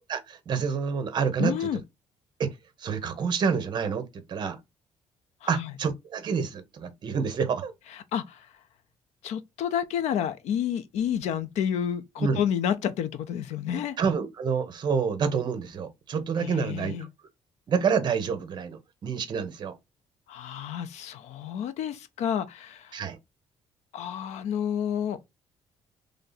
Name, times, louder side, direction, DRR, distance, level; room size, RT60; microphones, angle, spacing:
voice 1, 0.1-1.7 2.4-2.5 2.8-4.6 5.5-7.7 12.2-12.4 14.0-17.1 17.7-19.7 22.9-23.2, right 6 dB, 40° right, 0.7 m, -28 dB
voice 2, 1.4-1.8 5.5-5.7 8.1-8.5 9.2-14.0 16.4-17.1 20.3-23.0 23.9-25.2, left 9 dB, 80° left, 0.5 m, -30 dB
3.2 x 2.7 x 3.8 m
cardioid pair, 155°, 11 cm